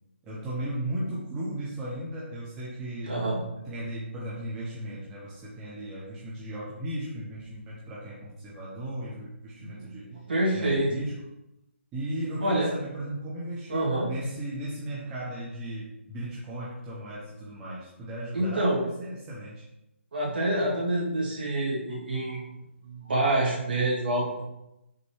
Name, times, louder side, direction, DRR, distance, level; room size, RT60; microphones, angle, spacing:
voice 1, 0.2-3.1 3.6-10.1 10.5-11.2 11.9-19.6, right 1 dB, 5° right, -7 dB, 0.3 m, -36 dB
voice 2, 3.0-3.4 9.6-10.9 12.4-12.7 13.7-14.1 18.3-18.8 20.1-22.5 22.8-24.4, right 1 dB, 45° right, -4 dB, 2.2 m, -27 dB
6.1 x 5.3 x 3.0 m, 0.90 s
hypercardioid pair, 180°, 7 cm